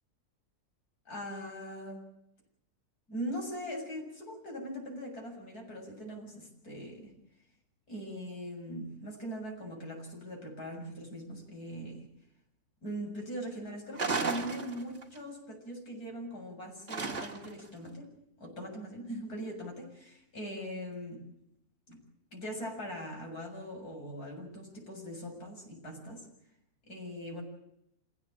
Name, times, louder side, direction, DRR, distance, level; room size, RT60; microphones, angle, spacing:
voice 1, 1.1-2.0 3.1-7.1 7.9-12.0 12.8-21.3 21.9-22.0 22.3-26.3 26.9-27.4, equal, 75° left, 1 dB, 7.8 m, -41 dB
sound 1, 14.0-15.2 16.9-17.7, right 4 dB, 50° right, 2.5 m, -34 dB
27.5 x 17.0 x 8.9 m, 0.81 s
omnidirectional pair, 1.6 m